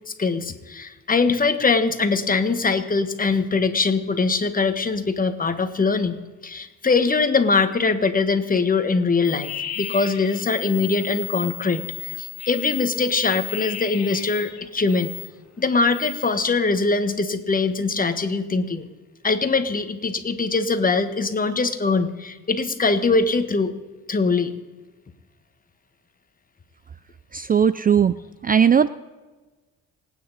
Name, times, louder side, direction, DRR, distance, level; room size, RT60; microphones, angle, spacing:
voice 1, 0.2-6.2 6.4-9.5 9.8-15.1 15.6-18.9 19.2-23.7 24.1-24.5, left 4 dB, 30° left, 9 dB, 1.5 m, -22 dB
sound 1, 9.2-15.3 15.7-16.3, left 11 dB, 60° left, 1.6 m, -35 dB
voice 2, 27.3-28.2 28.4-28.9, right 7 dB, 30° right, 15 dB, 0.4 m, -17 dB
27.0 x 9.4 x 4.2 m, 1.2 s
cardioid pair, 90°, 30 cm